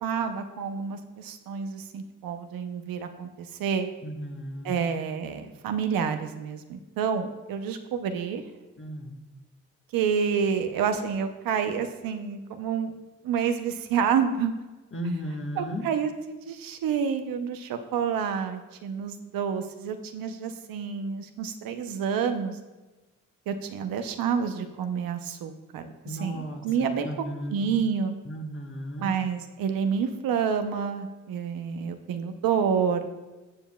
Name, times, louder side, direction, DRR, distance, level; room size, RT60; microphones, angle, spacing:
voice 1, 0.0-3.9 4.6-8.4 9.9-12.9 13.2-14.5 15.6-22.6 23.5-27.1 27.5-28.1 29.0-33.1, right 7 dB, 80° right, 7 dB, 0.7 m, -29 dB
voice 2, 4.0-4.8 8.8-9.2 14.9-15.9 26.0-27.6 28.2-29.1, equal, 35° left, 2 dB, 1.5 m, -35 dB
14.0 x 7.2 x 2.3 m, 1.2 s
supercardioid pair, 40°, 34 cm